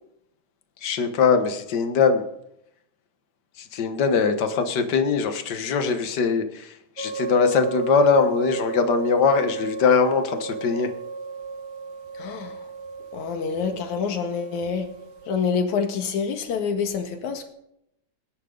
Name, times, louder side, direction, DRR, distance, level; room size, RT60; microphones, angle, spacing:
voice 1, 0.8-2.3 3.6-10.9, left 5 dB, 50° left, 1.3 m, -21 dB
sound 1, 7.0-15.4, right 4 dB, 65° right, 1.0 m, -34 dB
voice 2, 12.1-12.6 13.1-14.9 15.3-17.5, left 6 dB, 70° left, 3.0 m, -27 dB
20.0 x 10.5 x 3.9 m
omnidirectional pair, 3.6 m